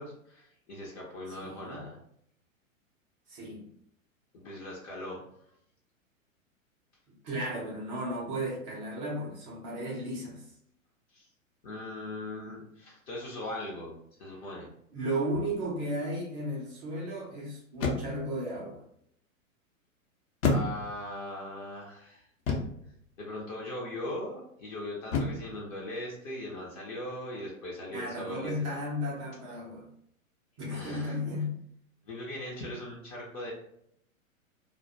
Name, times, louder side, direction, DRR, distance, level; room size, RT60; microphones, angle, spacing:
voice 1, 0.0-2.0 4.3-5.2 11.1-11.3 11.6-13.9 14.2-14.7 20.5-22.3 23.2-28.5 30.7-31.2 32.1-33.5, left 1 dB, 30° left, -3 dB, 0.5 m, -39 dB
voice 2, 1.4-1.9 3.3-3.7 7.1-10.5 14.9-18.8 27.9-29.9 30.6-31.6, equal, 25° right, -3 dB, 0.4 m, -34 dB
sound 1, 15.3-15.7 17.7-18.3 20.4-21.1 22.5-22.9 25.1-25.6, left 3 dB, 65° left, 0.7 m, -30 dB
2.3 x 2.2 x 2.6 m, 0.70 s
figure-of-eight pair, 105°, 41 cm